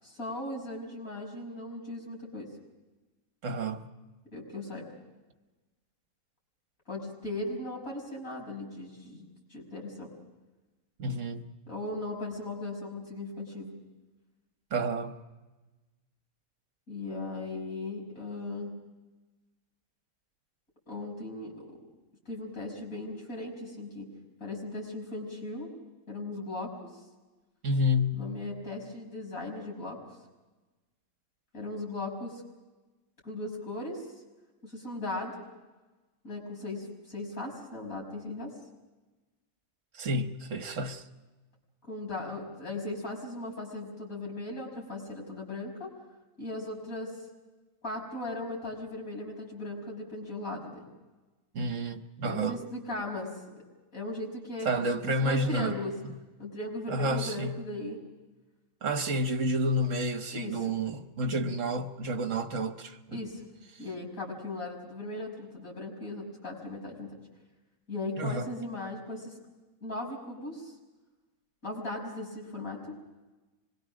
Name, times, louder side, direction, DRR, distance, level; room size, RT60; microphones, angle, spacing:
voice 1, 0.0-2.5 4.3-4.9 6.9-9.2 9.5-10.1 11.7-13.7 16.9-18.7 20.9-21.8 22.3-24.1 24.4-25.7 26.1-27.0 28.1-30.0 31.5-32.4 33.2-34.1 34.6-35.4 36.2-38.5 41.9-45.9 46.4-47.2 47.8-50.9 52.2-53.3 53.9-54.9 55.2-55.9 56.4-58.0 60.3-60.6 63.1-63.4 63.8-67.2 67.9-69.4 69.8-70.7 71.6-73.0, left 2 dB, 75° left, 6.3 m, -38 dB
voice 2, 3.4-3.9 11.0-11.5 14.7-15.2 27.6-28.3 39.9-41.0 51.5-52.6 54.6-55.7 56.9-57.6 58.8-63.2 68.2-68.5, equal, 60° right, 1.5 m, -30 dB
25.5 x 21.5 x 6.3 m
omnidirectional pair, 1.5 m